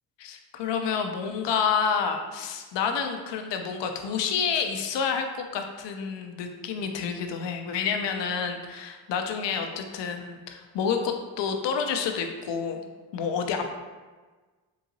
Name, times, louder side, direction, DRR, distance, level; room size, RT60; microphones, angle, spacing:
voice 1, 0.2-5.3 5.5-12.9 13.1-13.7, left 6 dB, 75° left, 5 dB, 0.6 m, -29 dB
3.9 x 2.7 x 2.7 m, 1.3 s
cardioid pair, 65°, 43 cm